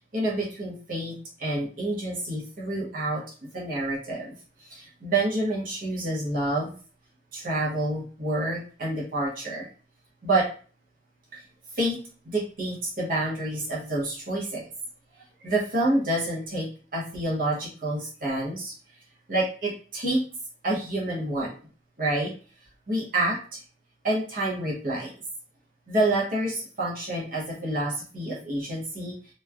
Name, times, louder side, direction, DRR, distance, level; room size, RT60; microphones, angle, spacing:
voice 1, 0.0-6.7 7.3-9.7 10.2-10.5 11.3-11.4 11.7-12.0 12.2-14.7 15.1-18.7 19.3-20.2 20.6-21.5 22.0-22.3 22.9-23.6 24.0-25.1 25.9-29.2, right 1 dB, 50° right, -4 dB, 0.8 m, -28 dB
3.0 x 2.2 x 2.3 m, 0.40 s
head